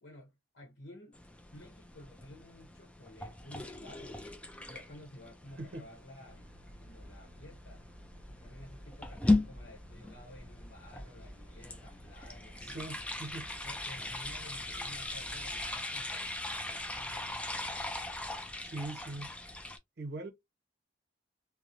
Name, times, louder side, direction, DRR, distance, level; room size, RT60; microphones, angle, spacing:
voice 1, 0.0-1.2 1.5-4.2 4.7-6.5 6.8-7.9 8.3-12.8 13.5-17.9, left 1 dB, 65° left, 0.8 m, -53 dB
sound 1, 1.1-19.8, left 2 dB, 5° left, 0.3 m, -38 dB
sound 2, 6.3-15.7, equal, 20° right, 1.2 m, -53 dB
voice 2, 12.6-13.5 18.6-19.3 20.0-20.3, right 2 dB, 60° right, 0.6 m, -41 dB
2.8 x 2.0 x 2.4 m
head